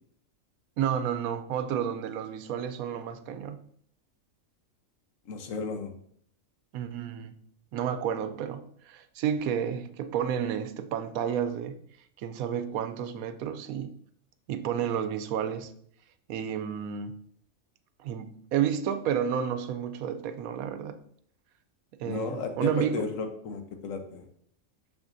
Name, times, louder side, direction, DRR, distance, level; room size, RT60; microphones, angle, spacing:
voice 1, 0.8-3.6 6.7-7.4 7.7-11.8 12.2-14.0 14.5-15.7 16.3-17.2 18.0-21.0 22.0-23.1, right 8 dB, 85° right, 1.0 m, -31 dB
voice 2, 5.3-5.9 22.1-24.2, left 4 dB, 70° left, 1.2 m, -34 dB
6.6 x 5.9 x 2.6 m
omnidirectional pair, 1.4 m